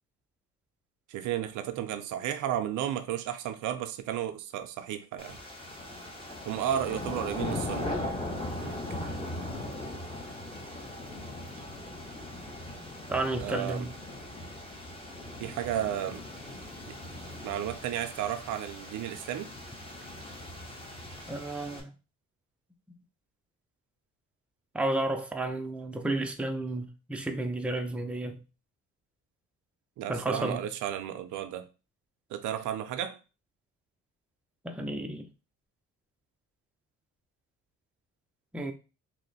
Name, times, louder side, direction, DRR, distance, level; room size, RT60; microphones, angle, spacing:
voice 1, 1.1-5.4 6.5-8.1 8.6-8.8 13.4-13.9 15.4-16.2 16.8-17.0 17.4-19.5 30.0-31.7 32.3-33.2, right 10 dB, 80° right, 0.5 m, -33 dB
sound 1, 5.2-21.8, left 1 dB, 20° left, 0.9 m, -39 dB
voice 2, 13.1-13.9 21.3-21.9 24.7-28.4 30.1-30.6 34.6-35.3 38.5-38.7, right 2 dB, 5° right, 0.5 m, -32 dB
2.9 x 2.1 x 4.0 m
cardioid pair, 90°, 30 cm